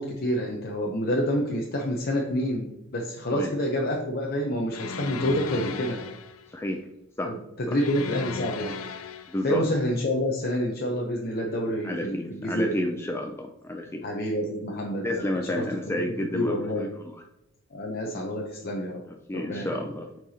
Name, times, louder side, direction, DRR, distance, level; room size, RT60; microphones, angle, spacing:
voice 1, 0.0-6.0 7.3-8.7 9.4-12.8 14.0-16.0 16.3-16.9 17.7-19.0 19.3-19.7, equal, 50° left, -1 dB, 0.8 m, -28 dB
sound 1, 4.7-6.5 7.8-9.5, left 5 dB, 90° left, 0.5 m, -36 dB
voice 2, 6.5-6.8 7.2-7.3 7.7-7.8 9.3-9.6 11.8-14.1 15.0-17.2 19.1-20.1, left 1 dB, 10° left, 3 dB, 0.4 m, -31 dB
8.8 x 4.6 x 2.8 m, 0.89 s
head